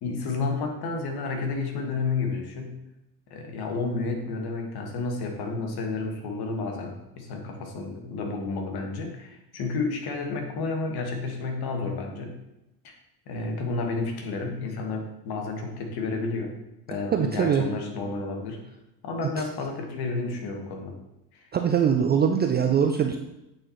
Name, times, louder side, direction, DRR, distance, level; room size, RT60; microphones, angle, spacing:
voice 1, 0.0-2.8 3.3-12.4 12.8-13.0 13.3-16.5 16.9-18.6 19.0-20.9 21.3-21.5, left 3 dB, 50° left, 3 dB, 1.6 m, -31 dB
voice 2, 17.1-17.7 21.5-23.2, right 7 dB, 25° right, 5 dB, 0.3 m, -22 dB
8.5 x 4.4 x 3.0 m, 0.90 s
hypercardioid pair, 70°, 47 cm